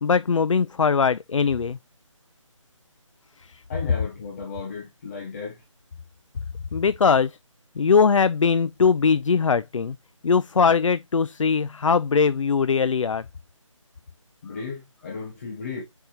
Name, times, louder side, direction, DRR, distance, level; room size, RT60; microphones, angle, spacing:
voice 1, 0.0-1.8 3.5-3.6 6.7-7.4 7.8-10.0 10.2-13.2, left 5 dB, 70° left, 0.5 m, -21 dB
voice 2, 3.7-5.6 14.4-15.8, left 5 dB, 25° left, 1.5 m, -35 dB
8.0 x 5.4 x 2.9 m
figure-of-eight pair, 165°, 17 cm